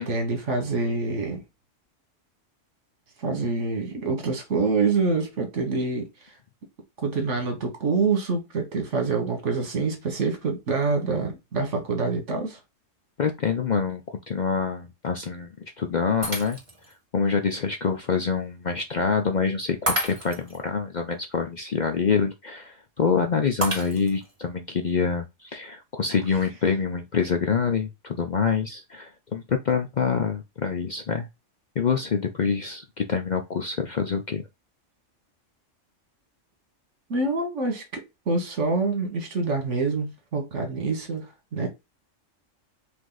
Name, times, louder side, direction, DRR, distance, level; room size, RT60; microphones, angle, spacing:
voice 1, 0.0-1.4 3.2-6.3 7.0-12.6 37.1-41.7, right 4 dB, 65° right, 1.7 m, -26 dB
voice 2, 13.2-16.6 16.9-19.8 20.0-31.3 31.8-34.5, left 5 dB, 55° left, 0.5 m, -26 dB
Shatter, 16.2-16.9 17.5-17.6 19.9-20.6 23.6-24.3, right 1 dB, 25° right, 1.6 m, -29 dB
4.9 x 2.7 x 3.9 m
omnidirectional pair, 1.3 m